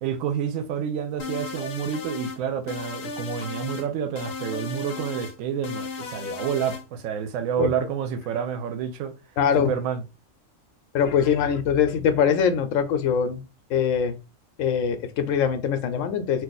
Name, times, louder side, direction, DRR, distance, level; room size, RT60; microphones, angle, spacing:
voice 1, 0.0-9.1 9.6-10.0, right 8 dB, 90° right, 1.0 m, -29 dB
sound 1, 1.2-2.4 2.7-3.9 4.2-5.3 5.6-6.8, left 5 dB, 65° left, 0.8 m, -35 dB
voice 2, 9.4-9.7 10.9-13.4 13.7-14.1 14.6-16.4, left 7 dB, 85° left, 1.0 m, -22 dB
2.6 x 2.4 x 3.9 m
omnidirectional pair, 1.3 m